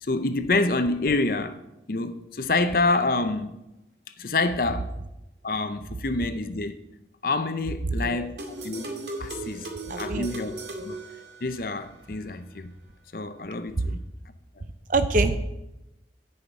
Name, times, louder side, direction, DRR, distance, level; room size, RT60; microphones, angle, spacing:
voice 1, 0.0-1.6 1.9-3.6 4.2-4.9 5.4-6.8 7.2-9.7 10.0-10.6 10.8-11.0 11.4-12.7 13.1-14.0, left 3 dB, 50° left, 0.6 m, -27 dB
voice 2, 7.9-8.2 9.9-10.3 10.8-10.9 13.9-14.0 14.9-15.4, right 2 dB, 45° right, 0.6 m, -25 dB
sound 1, 8.4-11.8, right 2 dB, 75° right, 2.2 m, -37 dB
10.0 x 5.7 x 8.5 m
head